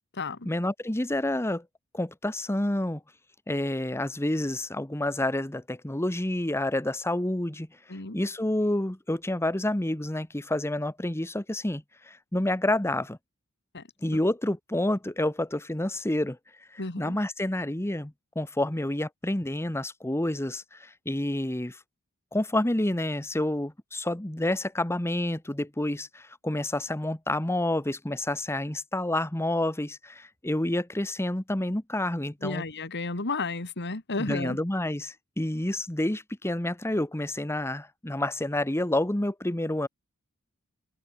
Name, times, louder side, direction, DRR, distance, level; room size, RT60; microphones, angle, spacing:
voice 1, 0.4-1.6 1.9-3.0 3.5-13.2 14.0-21.8 22.3-32.6 34.2-39.9, left 1 dB, 10° left, 1.1 m, -29 dB
voice 2, 16.8-17.2 32.4-34.6, left 3 dB, 50° left, 2.3 m, -32 dB
head